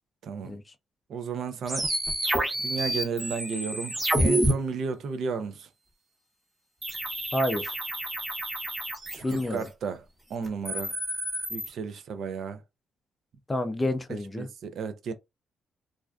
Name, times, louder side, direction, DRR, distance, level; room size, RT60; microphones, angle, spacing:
voice 1, 0.2-0.6 1.1-1.9 2.6-5.7 9.1-10.0 10.3-11.0 11.5-12.6 14.1-15.1, right 5 dB, 65° right, 0.4 m, -33 dB
sound 1, 1.7-4.5 6.8-9.6 10.5-11.7, right 1 dB, 15° right, 0.8 m, -29 dB
voice 2, 7.3-7.7 9.2-9.7 13.5-14.5, left 1 dB, 20° left, 0.4 m, -29 dB
2.4 x 2.2 x 2.3 m
cardioid pair, 90°, 0 cm